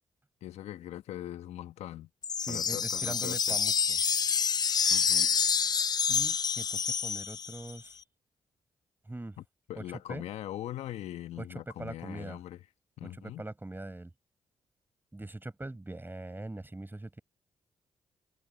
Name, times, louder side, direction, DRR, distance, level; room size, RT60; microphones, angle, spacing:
voice 1, 0.4-2.1 2.5-3.6 4.9-5.4 9.7-12.6 13.0-13.4, left 13 dB, 75° left, 1.5 m, -41 dB
sound 1, 2.2-7.7, left 6 dB, 35° left, 0.4 m, -28 dB
voice 2, 2.4-4.0 6.1-8.0 9.1-9.4 9.8-9.9 10.1-10.2 11.4-11.5 11.8-12.4 13.0-14.1 15.1-17.2, right 2 dB, 20° right, 4.8 m, -42 dB
hypercardioid pair, 45°, 11 cm